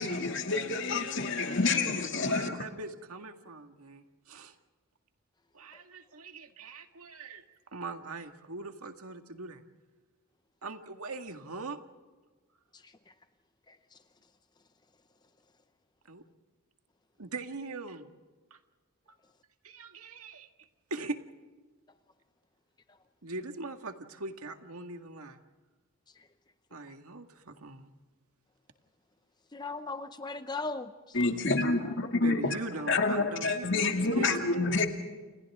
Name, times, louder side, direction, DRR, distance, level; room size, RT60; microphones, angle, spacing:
voice 1, 0.0-2.6 31.1-32.6 32.9-34.9, left 3 dB, 55° left, 2.3 m, -28 dB
voice 2, 2.2-4.5 5.5-7.4 7.7-9.6 10.6-11.8 16.1-16.2 17.2-18.1 18.5-18.6 19.1-19.2 19.6-21.2 23.2-25.4 26.7-27.9 32.2-34.9, right 3 dB, 80° right, 1.9 m, -41 dB
voice 3, 29.5-31.2, left 3 dB, 20° left, 0.7 m, -38 dB
30.0 x 28.5 x 3.7 m
head